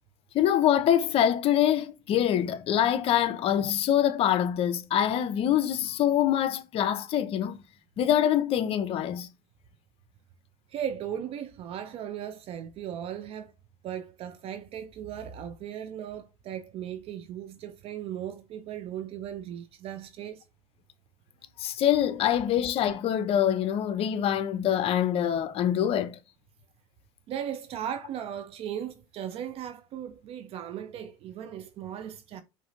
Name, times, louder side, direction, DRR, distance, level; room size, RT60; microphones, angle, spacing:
voice 1, 0.3-7.6 8.0-9.3 21.6-26.2, left 10 dB, 45° left, 0.6 m, -25 dB
voice 2, 10.7-13.5 13.8-20.4 27.3-32.4, right 9 dB, 45° right, 0.5 m, -37 dB
4.8 x 2.6 x 2.6 m
hypercardioid pair, 90°, 14 cm